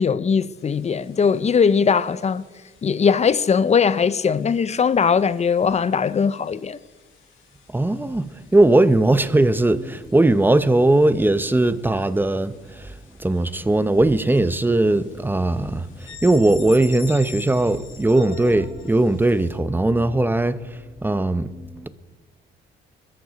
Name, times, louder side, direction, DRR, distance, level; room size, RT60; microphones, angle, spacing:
voice 1, 0.0-2.4 2.8-6.8, left 6 dB, 35° left, 0.6 m, -20 dB
sound 1, 0.6-19.6, left 5 dB, 80° left, 2.8 m, -45 dB
voice 2, 7.7-12.9 13.2-21.9, right 2 dB, 10° right, 0.7 m, -19 dB
22.0 x 13.5 x 4.1 m
cardioid pair, 90°, 20 cm